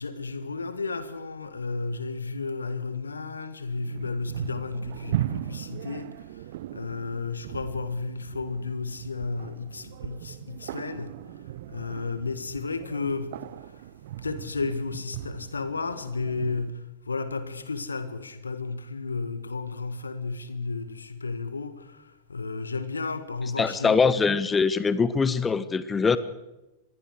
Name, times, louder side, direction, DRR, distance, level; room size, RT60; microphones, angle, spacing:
voice 1, 0.0-11.4 11.7-13.9 14.2-24.2, left 4 dB, 75° left, 1.7 m, -33 dB
sound 1, 3.7-16.7, right 13 dB, 55° right, 0.8 m, -38 dB
voice 2, 23.6-26.2, left 5 dB, 15° left, 1.1 m, -23 dB
25.5 x 20.5 x 4.9 m
figure-of-eight pair, 90°, 0 cm